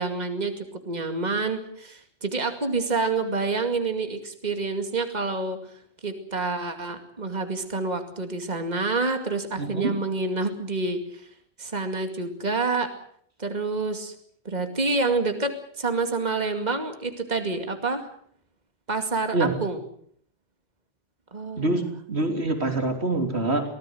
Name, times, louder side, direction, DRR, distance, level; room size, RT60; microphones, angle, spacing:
voice 1, 0.0-5.6 6.0-11.3 11.6-12.9 13.4-14.1 14.4-18.1 18.9-19.8 21.3-21.9, right 3 dB, 40° right, 6 dB, 2.5 m, -28 dB
voice 2, 9.6-9.9 19.3-19.5 21.6-21.8 22.1-23.6, right 2 dB, 65° right, 5 dB, 3.8 m, -25 dB
24.5 x 18.0 x 7.9 m, 0.62 s
omnidirectional pair, 1.2 m